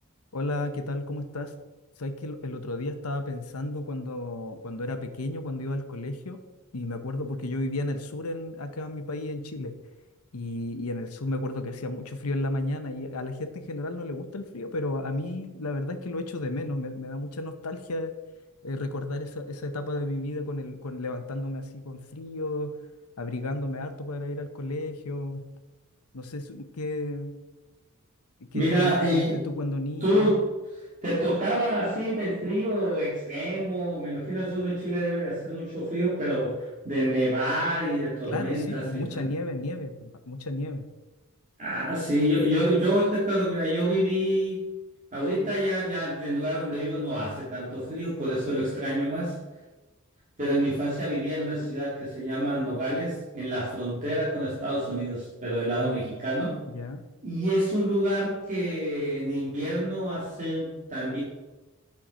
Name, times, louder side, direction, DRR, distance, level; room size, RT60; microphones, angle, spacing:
voice 1, 0.3-1.5 2.0-6.4 6.7-9.7 10.3-18.1 18.6-22.7 23.2-25.5 26.1-27.4 28.5-30.4 38.3-40.8 55.7-56.2 56.7-57.0, left 2 dB, 80° left, 7 dB, 0.9 m, -33 dB
voice 2, 28.5-29.4 30.0-30.5 31.0-39.2 41.6-44.7 45.1-49.4 50.4-56.6 57.2-61.2, equal, 35° right, -7 dB, 2.3 m, -27 dB
8.9 x 5.8 x 5.1 m, 1.1 s
head